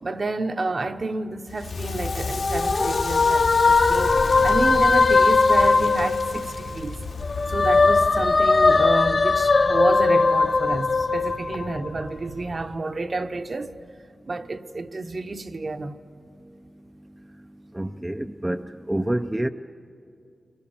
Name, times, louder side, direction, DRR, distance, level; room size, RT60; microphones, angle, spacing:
voice 1, 0.0-7.0 7.5-13.8 14.3-16.0, right 3 dB, 40° right, 0.9 m, -30 dB
Crackle, 1.5-10.4, left 4 dB, 85° left, 2.8 m, -33 dB
sound 1, 1.9-6.8 7.2-12.0, left 4 dB, 40° left, 0.5 m, -20 dB
sound 2, 2.2-12.8, right 3 dB, 60° right, 1.3 m, -43 dB
voice 2, 17.7-19.5, right 1 dB, 10° right, 0.5 m, -27 dB
28.5 x 23.5 x 7.2 m
wide cardioid pair, 110°, 0 cm